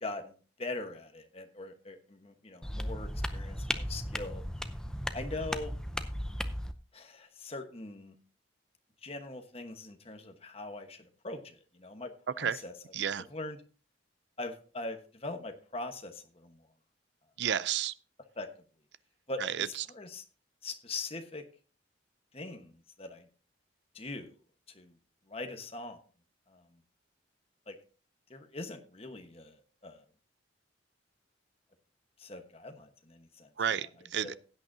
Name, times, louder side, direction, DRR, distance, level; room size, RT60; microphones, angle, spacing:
voice 1, 0.0-0.3 0.6-4.4 5.1-5.7 6.9-8.1 9.0-12.1 12.4-12.7 13.2-13.6 14.4-16.6 18.4-18.5 19.3-20.2 20.6-21.4 22.3-23.3 23.9-24.3 24.7-24.9 25.3-26.0 26.5-26.6 27.7-27.8 28.3-30.0 32.2-33.5 33.8-33.9 34.2-34.3, left 2 dB, 30° left, 1.2 m, -42 dB
sound 1, 2.6-6.7, equal, 5° left, 0.6 m, -36 dB
voice 2, 12.9-13.2 17.4-17.9 19.4-19.7 33.6-34.3, right 8 dB, 60° right, 0.5 m, -31 dB
16.0 x 8.9 x 2.7 m
head